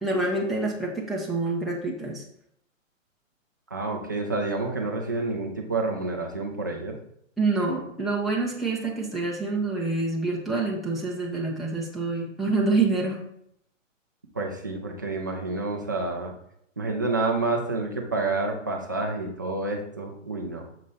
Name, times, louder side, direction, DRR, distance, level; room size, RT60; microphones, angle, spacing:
voice 1, 0.0-2.2 7.4-13.2, right 3 dB, ahead, -5 dB, 0.8 m, -27 dB
voice 2, 3.7-7.0 14.4-16.3 16.8-20.6, right 3 dB, 15° right, 1 dB, 0.3 m, -29 dB
6.5 x 5.3 x 4.2 m, 0.73 s
hypercardioid pair, 145°, 39 cm